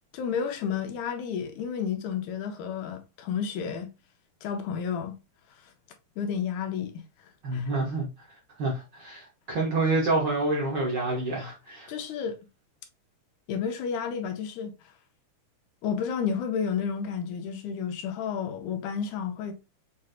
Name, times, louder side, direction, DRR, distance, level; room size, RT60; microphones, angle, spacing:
voice 1, 0.1-3.9 4.4-5.2 6.2-7.0 7.5-7.7 11.9-12.4 13.5-14.7 15.8-19.5, left 7 dB, 80° left, 2.1 m, -31 dB
voice 2, 7.4-8.1 8.6-11.9, right 2 dB, 65° right, 1.1 m, -28 dB
6.2 x 2.5 x 2.6 m
omnidirectional pair, 3.5 m